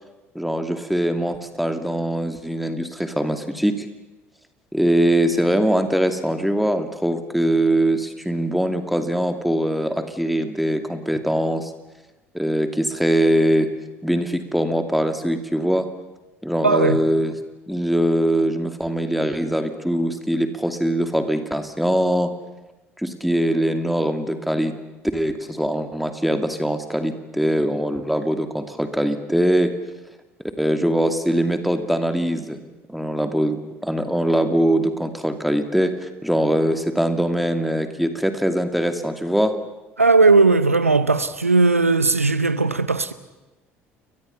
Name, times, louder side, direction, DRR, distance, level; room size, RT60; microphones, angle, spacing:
voice 1, 0.3-3.9 4.7-11.7 12.3-13.7 14.0-15.9 16.4-17.3 17.7-22.3 23.0-24.7 25.1-29.7 30.6-32.6 32.9-39.6, right 1 dB, ahead, 2.5 m, -22 dB
voice 2, 16.6-17.0 40.0-43.1, right 3 dB, 85° right, 0.9 m, -17 dB
30.0 x 23.0 x 5.7 m
figure-of-eight pair, 60°, 7 cm